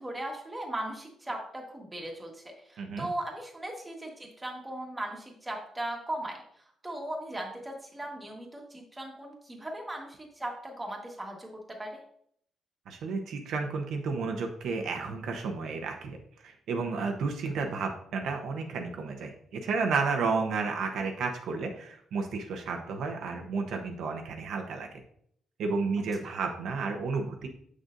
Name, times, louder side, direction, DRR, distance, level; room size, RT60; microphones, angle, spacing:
voice 1, 0.0-6.4 6.8-11.5 11.8-11.9, right 1 dB, 10° right, 0 dB, 1.5 m, -38 dB
voice 2, 2.8-3.1 12.9-16.2 16.4-24.9 25.6-27.5, right 4 dB, 65° right, 3 dB, 0.8 m, -32 dB
7.7 x 6.4 x 2.6 m, 0.66 s
cardioid pair, 150°, 0 cm